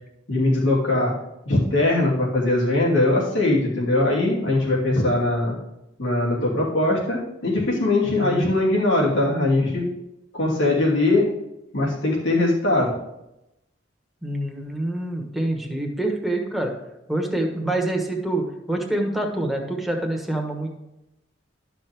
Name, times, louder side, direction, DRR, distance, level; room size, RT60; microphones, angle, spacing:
voice 1, 0.3-1.1 1.5-5.5 6.0-9.8 10.3-11.3 11.7-12.9, left 2 dB, 90° left, -4 dB, 2.7 m, -21 dB
voice 2, 14.2-16.7 17.1-20.7, right 1 dB, ahead, 1 dB, 1.2 m, -26 dB
12.0 x 5.9 x 3.5 m, 0.89 s
head